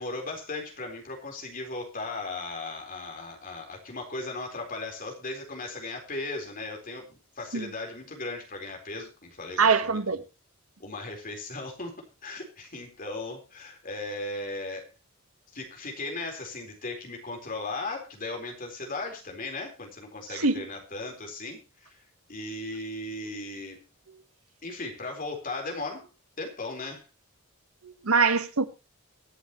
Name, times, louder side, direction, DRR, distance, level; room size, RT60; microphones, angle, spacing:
voice 1, 0.0-10.0 10.8-11.9 12.2-14.9 15.5-22.0 22.3-23.8 24.6-26.1 26.4-27.0, left 2 dB, 40° left, 4.1 m, -37 dB
voice 2, 9.6-10.2 20.4-20.6 27.8-28.6, right 4 dB, 80° right, 1.3 m, -23 dB
24.0 x 8.4 x 3.0 m
head